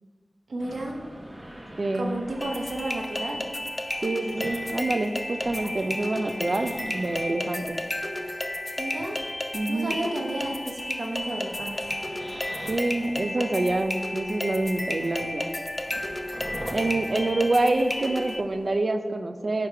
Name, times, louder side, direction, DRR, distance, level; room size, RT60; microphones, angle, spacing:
voice 1, 0.5-1.0 1.9-3.4 8.8-9.2 9.7-11.9, right 1 dB, 85° right, 1 dB, 0.8 m, -32 dB
sound 1, 0.6-18.8, equal, 25° right, 0.9 m, -44 dB
voice 2, 1.8-2.1 4.0-7.8 9.5-10.0 12.7-15.5 16.7-19.7, right 2 dB, 55° right, 8 dB, 0.4 m, -26 dB
sound 2, 2.4-18.4, left 1 dB, 25° left, 0.4 m, -33 dB
5.1 x 4.7 x 4.6 m, 1.5 s
wide cardioid pair, 75°, 0 cm